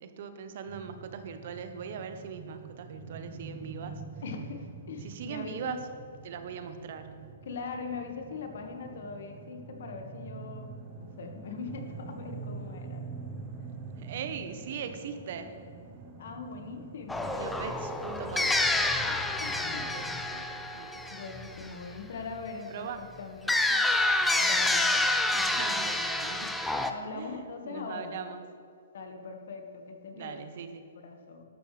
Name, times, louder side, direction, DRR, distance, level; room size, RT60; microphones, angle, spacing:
voice 1, 0.0-4.0 5.0-5.8 6.2-7.3 14.0-15.5 17.4-18.6 19.6-20.0 20.3-21.0 22.7-23.0 23.4-23.6 25.3-26.6 27.1-28.4 30.1-30.8, right 7 dB, 55° right, 8 dB, 1.0 m, -40 dB
sound 1, 0.7-20.3, right 4 dB, 25° right, 1.0 m, -45 dB
voice 2, 4.2-5.8 7.4-10.7 11.0-13.0 16.2-17.4 19.0-20.0 21.1-23.5 24.4-25.0 26.9-28.2 28.9-30.5 31.0-31.4, left 4 dB, 65° left, 4 dB, 1.7 m, -41 dB
sound 2, 17.1-21.9 23.5-26.9, left 2 dB, 5° left, 0.6 m, -28 dB
12.5 x 12.0 x 3.4 m, 2.4 s
hypercardioid pair, 145°, 0 cm